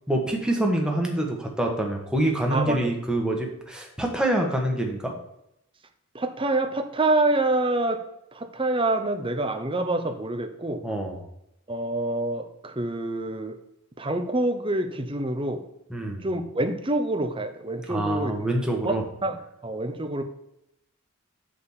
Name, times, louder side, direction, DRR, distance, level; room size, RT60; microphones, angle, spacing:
voice 1, 0.1-5.1 10.8-11.2 15.9-16.2 17.9-19.0, right 1 dB, 5° right, 1 dB, 1.3 m, -26 dB
voice 2, 6.1-8.0 8.3-10.8 11.7-13.6 14.0-15.6 16.2-18.3 18.8-19.4 19.6-20.2, right 2 dB, 25° right, 7 dB, 0.8 m, -26 dB
6.9 x 5.0 x 7.1 m, 0.82 s
head